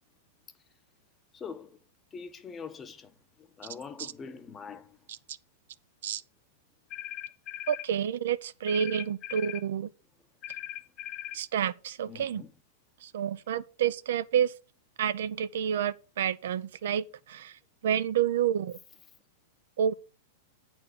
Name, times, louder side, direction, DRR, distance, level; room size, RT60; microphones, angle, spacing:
voice 1, 1.3-1.8 2.1-5.0 12.1-12.5, left 6 dB, 25° left, 0.9 m, -44 dB
sound 1, 6.9-7.9 8.7-9.7 10.4-11.4, left 13 dB, 40° left, 0.5 m, -39 dB
voice 2, 7.7-9.9 11.3-12.4 13.0-14.5 15.0-17.6 17.8-18.8 19.8-19.9, right 9 dB, 75° right, 0.6 m, -29 dB
8.6 x 4.5 x 6.8 m
hypercardioid pair, 120°, 0 cm